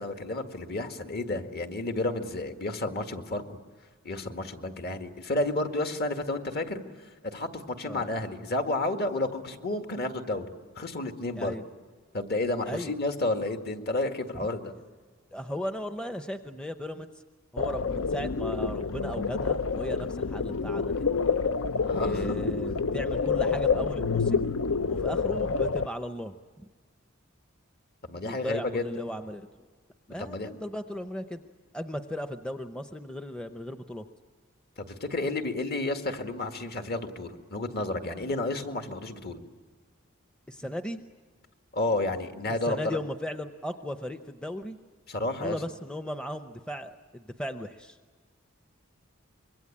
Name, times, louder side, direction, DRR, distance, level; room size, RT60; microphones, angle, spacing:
voice 1, 0.0-3.6 4.0-6.8 7.2-10.5 10.8-11.6 12.1-14.7 21.8-22.5 28.0-28.8 30.2-30.5 34.8-39.4 41.7-43.0 45.1-45.6, left 2 dB, 50° left, 5 dB, 2.0 m, -31 dB
voice 2, 15.3-17.1 17.5-21.1 22.0-24.4 24.9-26.7 28.2-29.5 30.1-31.4 31.7-34.1 40.5-41.0 42.5-44.8 45.3-48.0, equal, 5° left, 7 dB, 0.7 m, -36 dB
sound 1, 17.6-25.9, left 5 dB, 70° left, 0.7 m, -28 dB
25.5 x 22.5 x 8.7 m, 1.5 s
head